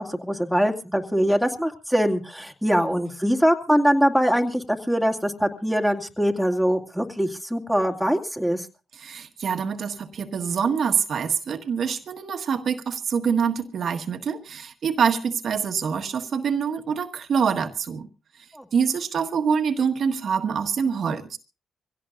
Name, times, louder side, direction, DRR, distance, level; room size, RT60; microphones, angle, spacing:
voice 1, 0.0-8.6 18.5-18.6, equal, ahead, 2.4 m, -23 dB
voice 2, 8.9-18.1 18.7-21.4, right 6 dB, 65° right, 1.5 m, -25 dB
24.5 x 17.0 x 2.6 m
supercardioid pair, 45°, 0 cm